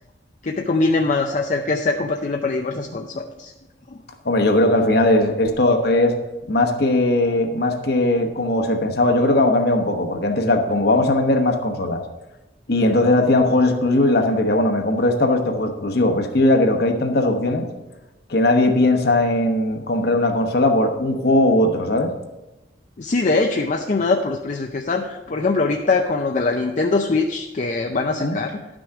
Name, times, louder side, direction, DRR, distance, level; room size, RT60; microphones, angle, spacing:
voice 1, 0.4-3.5 23.0-28.6, left 3 dB, 45° left, 3 dB, 0.5 m, -22 dB
voice 2, 4.2-6.2 6.5-12.0 12.7-17.7 18.3-22.1 28.2-28.4, left 1 dB, 60° left, 5 dB, 1.1 m, -19 dB
11.5 x 6.2 x 4.7 m, 1.0 s
head